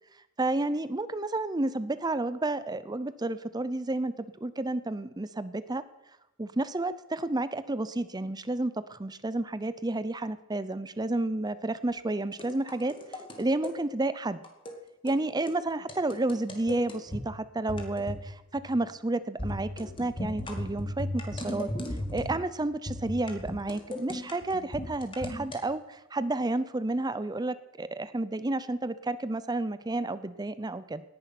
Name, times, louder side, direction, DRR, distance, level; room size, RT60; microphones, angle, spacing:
voice 1, 0.4-4.1 4.4-5.8 6.4-14.4 15.0-21.7 22.1-31.0, right 2 dB, 20° right, 14 dB, 0.6 m, -31 dB
sound 1, 12.3-13.8 14.4-14.8 15.1-15.2 15.5-15.6 15.9-17.3 17.7-18.3 18.5-18.8 19.4-22.5 22.9-25.6, left 1 dB, 25° left, 2.3 m, -36 dB
18.0 x 11.0 x 6.0 m, 0.94 s
head